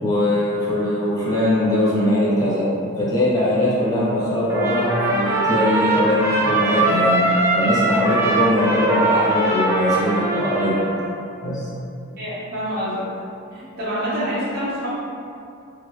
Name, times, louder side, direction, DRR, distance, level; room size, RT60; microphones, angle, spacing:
voice 1, 0.0-2.7 3.0-7.2 7.5-10.8 11.4-11.7, left 1 dB, 20° left, -9 dB, 0.7 m, -21 dB
Trumpet, 4.5-11.1, right 2 dB, 15° right, 0.4 m, -21 dB
voice 2, 12.2-13.1 13.5-14.9, equal, 45° right, -11 dB, 0.9 m, -26 dB
3.2 x 2.4 x 3.0 m, 2.5 s
head